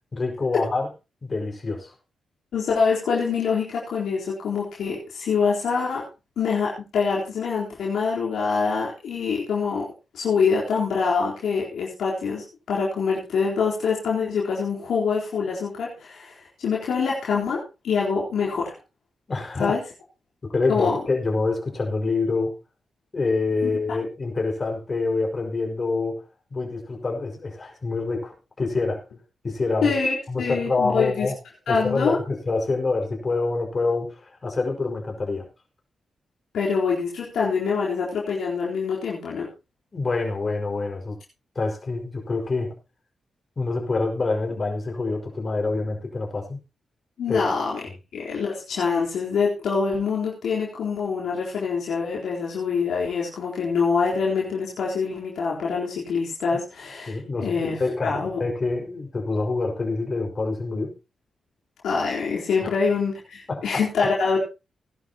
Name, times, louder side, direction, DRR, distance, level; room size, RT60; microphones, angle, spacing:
voice 1, 0.1-0.9 1.2-1.9 19.3-19.8 20.5-22.6 23.1-26.2 26.5-29.0 29.4-29.9 30.3-31.4 31.7-35.5 39.9-41.2 41.6-42.8 43.6-46.6 47.3-47.4 57.1-57.5 57.8-61.0 62.6-62.7 63.5-63.8, left 3 dB, 45° left, 2 dB, 5.5 m, -26 dB
voice 2, 2.5-6.0 6.4-9.9 10.1-18.7 19.6-19.8 20.7-21.0 23.6-23.7 29.8-31.3 31.7-32.2 36.5-39.5 47.2-47.8 48.1-58.4 61.8-64.4, left 5 dB, 75° left, -5 dB, 4.0 m, -25 dB
20.0 x 11.0 x 3.0 m, 0.29 s
hypercardioid pair, 40°, 0 cm